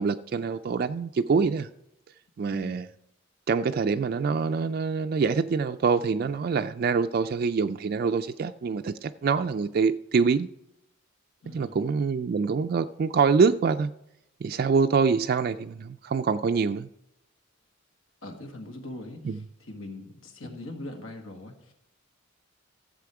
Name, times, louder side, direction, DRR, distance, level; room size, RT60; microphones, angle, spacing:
voice 1, 0.0-1.7 2.4-2.9 3.5-10.5 11.5-13.9 14.4-16.9 19.2-19.4, right 5 dB, 45° right, 0.3 m, -25 dB
voice 2, 11.4-11.8 18.2-21.7, left 2 dB, 80° left, 1.7 m, -41 dB
14.0 x 7.6 x 4.7 m
head